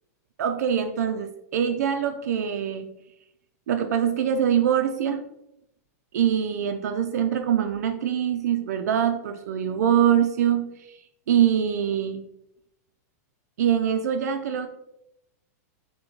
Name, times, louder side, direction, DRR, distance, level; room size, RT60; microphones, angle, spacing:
voice 1, 0.4-2.9 3.7-5.2 6.1-11.0 11.3-12.2 13.6-14.7, right 9 dB, 75° right, 7 dB, 0.4 m, -24 dB
6.0 x 2.1 x 3.0 m, 0.80 s
supercardioid pair, 175°, 9 cm